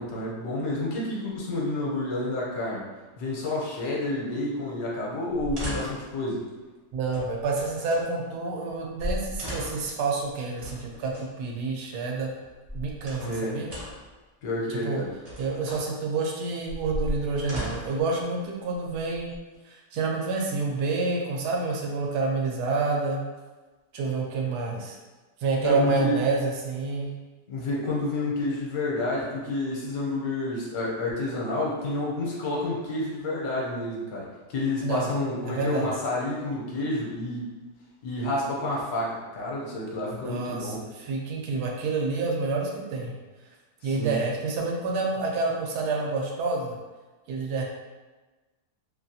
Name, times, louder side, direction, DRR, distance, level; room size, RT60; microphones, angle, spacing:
voice 1, 0.0-2.8 3.2-6.4 13.2-13.6 14.4-15.1 25.6-26.1 27.5-37.5 38.0-40.8 43.8-44.2, left 2 dB, 70° left, -4 dB, 1.1 m, -29 dB
sound 1, 5.3-6.1 7.1-8.0 8.7-8.8 9.0-9.9 10.6-11.3 12.4-13.4 13.7-14.1 15.0-15.9 16.7-18.0 18.9-19.6, equal, 40° right, 0.6 m, -36 dB
voice 2, 6.9-12.3 12.7-13.7 14.7-15.0 15.4-19.3 19.6-23.2 23.9-25.0 25.4-27.1 34.8-35.1 35.5-35.9 40.1-43.1 43.8-46.8 47.3-47.6, right 3 dB, 80° right, 0 dB, 1.1 m, -28 dB
2.8 x 2.3 x 2.6 m, 1.2 s
omnidirectional pair, 1.7 m